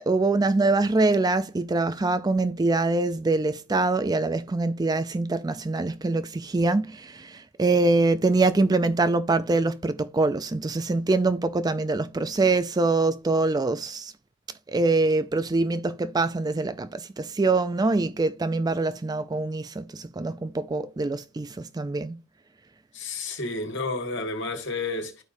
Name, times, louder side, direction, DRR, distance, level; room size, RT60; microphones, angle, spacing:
voice 1, 0.1-14.1 14.7-22.2, right 3 dB, 20° right, 0.3 m, -24 dB
voice 2, 22.9-25.2, left 3 dB, 55° left, 1.9 m, -31 dB
13.5 x 4.8 x 2.6 m
head